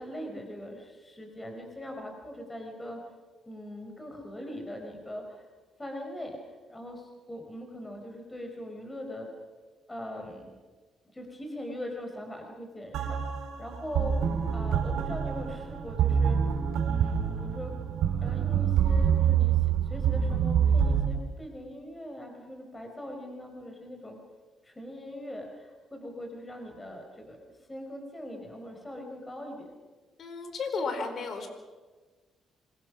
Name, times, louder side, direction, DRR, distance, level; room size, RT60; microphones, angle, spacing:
voice 1, 0.0-3.0 3.4-5.5 5.8-9.3 9.9-10.6 11.1-16.4 16.9-17.7 18.2-24.2 24.6-27.4 27.7-29.8, left 1 dB, 15° left, 3 dB, 5.0 m, -41 dB
sound 1, 12.9-21.1, right 8 dB, 85° right, 4.2 m, -26 dB
voice 2, 30.2-31.5, left 4 dB, 55° left, 6 dB, 4.2 m, -33 dB
26.5 x 23.5 x 6.3 m, 1.3 s
cardioid pair, 90°, 0 cm